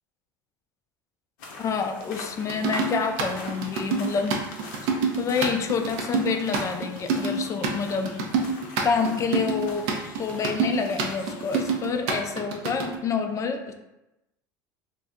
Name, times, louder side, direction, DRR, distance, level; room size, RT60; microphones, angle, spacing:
sound 1, 1.4-12.3, left 3 dB, 75° left, 0.6 m, -43 dB
voice 1, 1.6-4.4 5.2-8.1 8.8-9.9 10.2-13.7, left 5 dB, 30° left, 6 dB, 0.4 m, -27 dB
sound 2, 2.5-13.0, right 5 dB, 65° right, 0.5 m, -26 dB
2.7 x 2.0 x 3.6 m, 0.94 s
hypercardioid pair, 80°, 11 cm